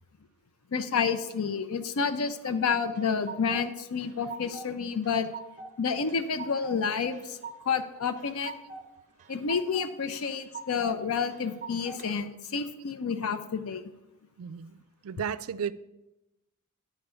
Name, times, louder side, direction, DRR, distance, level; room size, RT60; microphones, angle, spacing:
voice 1, 0.7-5.3 5.8-7.4 7.7-8.5 9.3-13.8, left 6 dB, 75° left, 9 dB, 0.5 m, -29 dB
sound 1, 2.6-3.7 4.0-4.7 5.0-5.7 6.1-6.8 7.1-7.8 8.2-8.8 9.2-9.9 10.2-10.9 11.3-12.1, right 4 dB, 35° right, 0.6 m, -42 dB
voice 2, 14.4-15.7, right 7 dB, 70° right, 16 dB, 0.4 m, -34 dB
9.6 x 4.5 x 6.8 m, 0.99 s
head